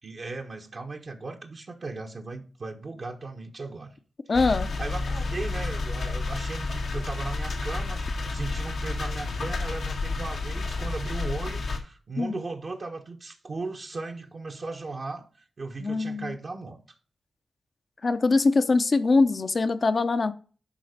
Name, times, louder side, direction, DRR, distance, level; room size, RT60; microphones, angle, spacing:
voice 1, 0.0-4.0 4.8-15.2 15.6-16.8, right 3 dB, 60° right, 1.3 m, -37 dB
sound 1, 4.3-11.8, left 3 dB, 85° left, 2.0 m, -30 dB
voice 2, 4.3-4.7 12.2-12.4 15.8-16.3 18.0-20.3, left 3 dB, 55° left, 0.9 m, -23 dB
11.5 x 3.9 x 5.2 m
supercardioid pair, 40°, 0 cm